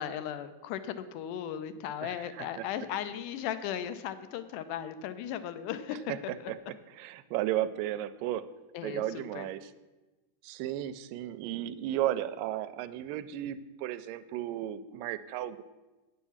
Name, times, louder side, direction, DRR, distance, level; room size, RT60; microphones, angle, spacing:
voice 1, 0.0-6.5 8.7-9.5, left 9 dB, 75° left, 12 dB, 2.1 m, -37 dB
voice 2, 2.0-2.7 6.1-6.2 7.0-8.5 8.8-9.7 10.4-15.6, right 13 dB, 85° right, 13 dB, 2.2 m, -34 dB
9.3 x 8.9 x 7.1 m, 1.2 s
omnidirectional pair, 4.0 m